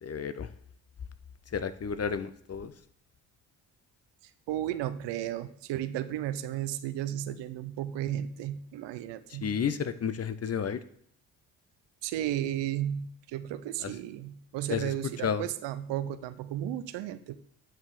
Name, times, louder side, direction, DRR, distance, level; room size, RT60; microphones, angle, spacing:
voice 1, 0.0-0.5 1.5-2.7 9.4-10.8 13.8-13.9 14.7-14.9 15.2-15.4, left 7 dB, 35° left, 14 dB, 0.7 m, -31 dB
voice 2, 4.5-9.5 12.0-17.4, right 11 dB, 75° right, 13 dB, 0.7 m, -34 dB
9.4 x 3.6 x 6.4 m, 0.63 s
supercardioid pair, 65°, 43 cm